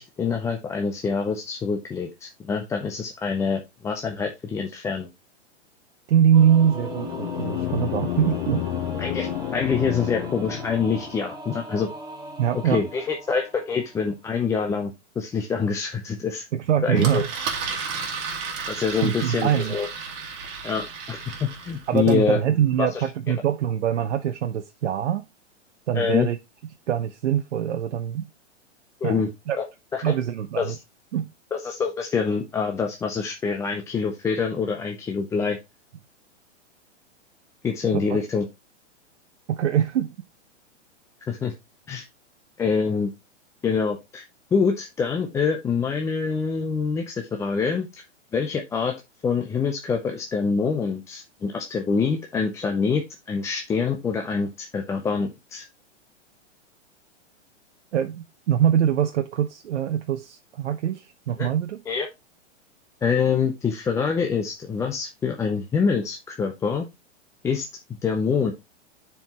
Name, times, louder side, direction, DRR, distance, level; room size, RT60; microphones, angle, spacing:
voice 1, 0.0-5.1 9.0-11.9 12.6-16.5 16.8-17.2 18.7-19.9 20.6-21.2 21.6-22.4 22.8-23.1 25.9-26.3 29.0-29.3 29.6-29.7 29.9-30.0 30.6-30.8 31.5-35.6 37.6-38.4 41.3-41.5 41.9-42.1 42.6-43.1 43.6-44.2 44.5-47.9 48.3-48.9 49.2-55.6 61.4-61.5 61.9-62.1 63.0-66.9 67.4-67.7 68.0-68.5, left 5 dB, 10° left, 0.4 m, -25 dB
voice 2, 6.1-8.7 12.4-12.8 16.5-17.3 19.0-19.8 21.9-25.3 25.9-26.4 26.9-28.3 29.0-29.6 30.0-30.8 31.1-31.3 37.9-38.2 39.5-40.2 57.9-61.8, right 9 dB, 70° right, 0.8 m, -23 dB
sound 1, 6.3-11.3, left 13 dB, 45° left, 0.8 m, -31 dB
Singing / Musical instrument, 6.3-14.1, right 3 dB, 10° right, 1.2 m, -39 dB
Engine, 17.0-22.2, right 5 dB, 40° right, 2.6 m, -33 dB
10.0 x 4.6 x 2.9 m
hypercardioid pair, 130°, 36 cm